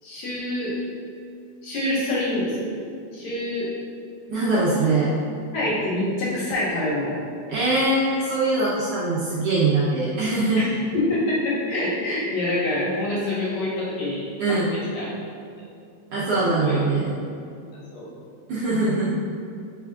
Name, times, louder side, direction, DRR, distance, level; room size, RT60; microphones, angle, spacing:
voice 1, 0.0-0.8 1.6-2.7 3.1-3.7 5.5-7.2 10.6-10.7 10.9-15.1 16.5-16.8 17.9-18.1, left 1 dB, 65° left, -8 dB, 2.9 m, -26 dB
voice 2, 4.3-5.1 7.5-10.6 14.4-14.7 16.1-17.1 18.5-19.1, right 2 dB, 70° right, -7 dB, 1.5 m, -22 dB
9.4 x 5.5 x 2.4 m, 2.5 s
omnidirectional pair, 3.4 m